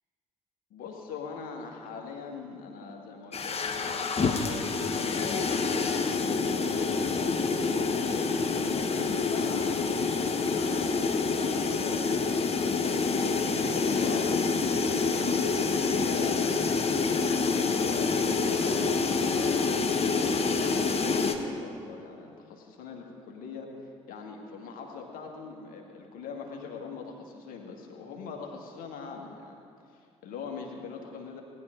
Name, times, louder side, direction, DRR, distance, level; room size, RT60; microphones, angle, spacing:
voice 1, 0.7-8.3 8.8-19.6 19.9-29.6 29.9-31.4, left 5 dB, 60° left, 1 dB, 1.9 m, -42 dB
sound 1, 3.3-21.3, left 4 dB, 40° left, 1.2 m, -27 dB
19.0 x 10.5 x 3.9 m, 2.5 s
figure-of-eight pair, 45°, 16 cm